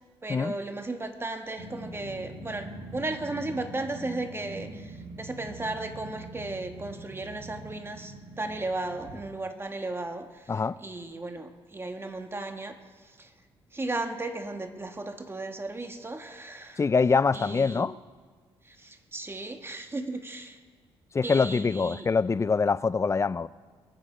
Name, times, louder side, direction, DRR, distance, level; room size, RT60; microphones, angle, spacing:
voice 1, 0.2-12.8 13.0-13.3 13.7-16.8 17.3-17.9 18.6-20.6 21.2-22.1, right 2 dB, 20° right, 1.5 m, -35 dB
Growling, 1.6-9.3, right 2 dB, 80° right, 2.9 m, -43 dB
voice 2, 16.8-17.9 21.1-23.5, left 5 dB, 25° left, 0.5 m, -24 dB
23.0 x 8.9 x 5.0 m
cardioid pair, 75°, 11 cm